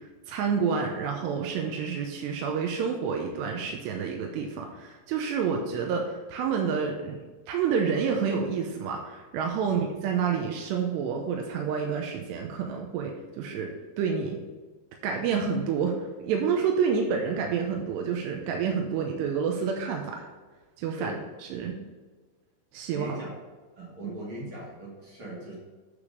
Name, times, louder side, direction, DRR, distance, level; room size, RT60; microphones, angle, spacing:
voice 1, 0.3-7.2 7.5-13.7 14.0-14.4 15.0-16.0 16.2-20.2 20.8-21.1 21.4-21.8 22.7-23.2 24.0-24.1, right 6 dB, 80° right, 1 dB, 2.8 m, -28 dB
voice 2, 22.9-23.3 23.8-25.6, right 1 dB, 40° right, -5 dB, 2.2 m, -39 dB
8.6 x 5.0 x 5.2 m, 1.3 s
omnidirectional pair, 5.2 m